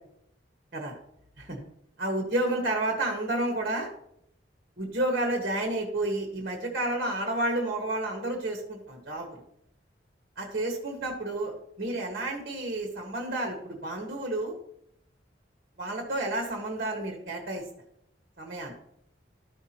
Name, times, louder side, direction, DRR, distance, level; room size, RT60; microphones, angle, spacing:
voice 1, 2.0-3.9 4.8-9.4 10.4-14.5 15.8-17.6 18.4-18.7, right 1 dB, 50° right, 1 dB, 1.3 m, -30 dB
13.0 x 5.9 x 2.9 m, 0.75 s
head